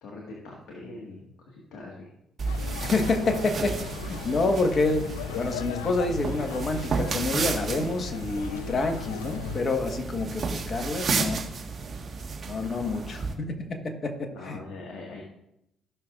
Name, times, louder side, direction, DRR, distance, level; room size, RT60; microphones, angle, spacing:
voice 1, 0.0-2.1 12.4-12.8 13.3-13.4 14.3-15.2, left 2 dB, 70° left, -1 dB, 1.7 m, -43 dB
sound 1, 2.4-9.6, left 10 dB, 90° left, 0.4 m, -38 dB
sound 2, 2.4-13.3, right 4 dB, 50° right, 1.6 m, -33 dB
voice 2, 2.9-3.8 4.1-5.1 5.4-11.4 12.4-14.6, left 3 dB, 50° left, 5 dB, 1.4 m, -28 dB
14.5 x 6.2 x 2.5 m, 0.82 s
hypercardioid pair, 50°, 0 cm